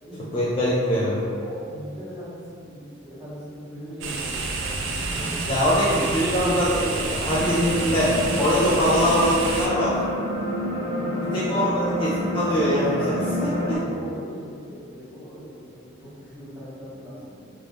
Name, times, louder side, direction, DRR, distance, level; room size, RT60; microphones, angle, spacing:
voice 1, 0.3-1.2 5.5-10.0 11.3-13.8, equal, 25° left, -8 dB, 0.3 m, -23 dB
voice 2, 1.4-5.5 10.8-12.0 13.4-17.5, equal, 5° right, -12 dB, 0.8 m, -39 dB
sound 1, 4.0-9.7, right 3 dB, 65° right, 0.3 m, -29 dB
sound 2, 7.3-13.8, equal, 75° left, 0.8 m, -28 dB
2.5 x 2.0 x 3.1 m, 2.3 s
head